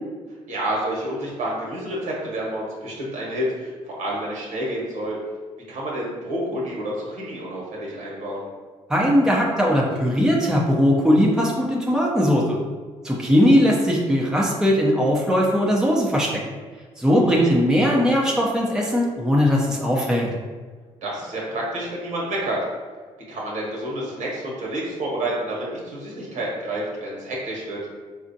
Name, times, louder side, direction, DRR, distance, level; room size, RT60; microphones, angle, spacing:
voice 1, 0.5-5.2 5.7-8.5 13.3-13.6 17.1-17.5 21.0-22.6 23.3-27.8, right 1 dB, 70° right, -4 dB, 1.2 m, -29 dB
voice 2, 8.9-12.6 13.0-16.3 17.0-20.3, equal, 5° right, -3 dB, 0.7 m, -19 dB
4.1 x 2.5 x 2.7 m, 1.5 s
supercardioid pair, 80°, 13 cm